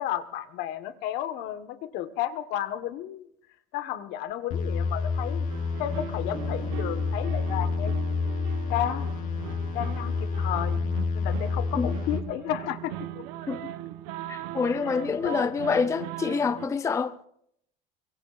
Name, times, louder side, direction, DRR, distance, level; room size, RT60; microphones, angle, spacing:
voice 1, 0.0-3.3 3.7-5.5 5.8-7.9 8.7-9.1 9.7-10.8 11.1-13.2 14.7-15.5, left 12 dB, 65° left, 1.5 m, -32 dB
sound 1, 4.5-12.2, left 4 dB, 45° left, 3.1 m, -29 dB
sound 2, 5.5-16.7, right 12 dB, 80° right, 1.1 m, -39 dB
voice 2, 14.3-17.1, left 5 dB, 15° left, 0.6 m, -27 dB
24.5 x 22.5 x 2.5 m
cardioid pair, 145°, 19 cm